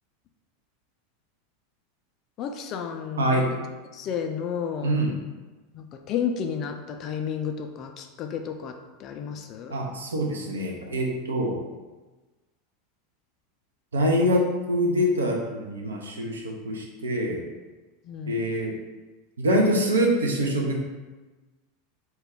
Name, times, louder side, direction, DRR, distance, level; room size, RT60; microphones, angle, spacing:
voice 1, 2.4-3.7 3.9-4.9 5.7-9.8 18.0-18.4, left 7 dB, 40° left, 5 dB, 0.3 m, -32 dB
voice 2, 3.2-3.5 4.8-5.1 9.7-11.6 13.9-17.4 18.3-18.7 19.4-20.8, equal, 80° right, 0 dB, 0.4 m, -25 dB
2.3 x 2.2 x 3.5 m, 1.2 s
figure-of-eight pair, 85°, 0 cm